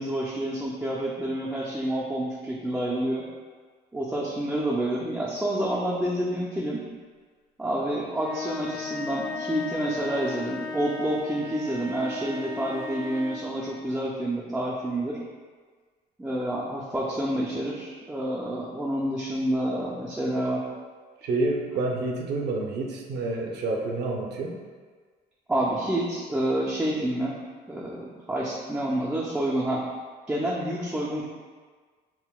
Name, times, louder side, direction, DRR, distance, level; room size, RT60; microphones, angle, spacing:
voice 1, 0.0-3.2 3.9-6.8 7.6-15.2 16.2-20.6 25.5-27.3 27.7-29.8 30.3-31.3, right 1 dB, 5° right, -6 dB, 0.3 m, -28 dB
sound 1, 8.1-13.6, left 4 dB, 80° left, 0.7 m, -35 dB
voice 2, 21.2-24.5, right 2 dB, 70° right, 0 dB, 0.6 m, -28 dB
5.7 x 2.1 x 2.3 m, 1.5 s
cardioid pair, 155°, 18 cm